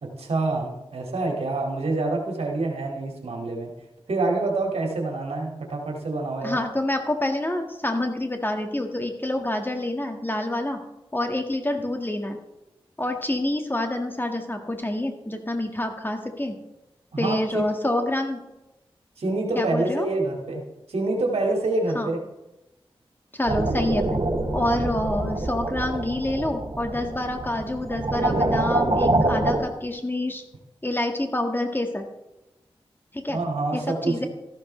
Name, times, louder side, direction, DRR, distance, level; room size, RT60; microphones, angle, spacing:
voice 1, 0.0-3.7 4.1-6.6 17.1-17.4 19.2-22.2 33.3-34.3, right 2 dB, 80° right, 0 dB, 2.3 m, -26 dB
voice 2, 6.4-10.8 11.1-12.4 13.0-16.5 17.2-18.4 19.5-20.1 22.0-22.1 23.3-24.2 24.5-30.4 30.8-32.1 33.1-33.4 33.7-34.3, left 1 dB, 20° left, 4 dB, 1.7 m, -27 dB
sound 1, 23.4-29.6, right 2 dB, 60° right, 3.6 m, -25 dB
13.5 x 11.5 x 3.3 m, 0.96 s
cardioid pair, 45°, 10 cm